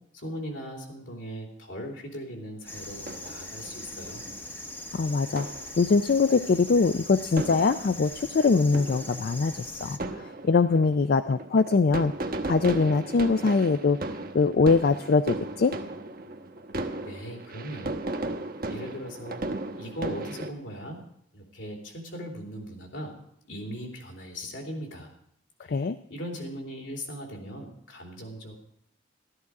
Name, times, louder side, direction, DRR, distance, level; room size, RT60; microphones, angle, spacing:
voice 1, 0.1-4.2 17.0-18.0 18.7-19.4 19.8-21.0 21.3-23.1 23.5-25.1 25.6-28.6, equal, 75° left, 1 dB, 3.3 m, -39 dB
sound 1, 2.7-10.0, left 1 dB, 10° left, 0.7 m, -41 dB
sound 2, 2.7-20.5, right 2 dB, 50° right, 1.0 m, -37 dB
voice 2, 4.9-5.5 5.8-14.0 14.3-15.7 25.7-26.0, left 4 dB, 50° left, 11 dB, 0.4 m, -23 dB
14.0 x 13.0 x 4.7 m, 0.70 s
head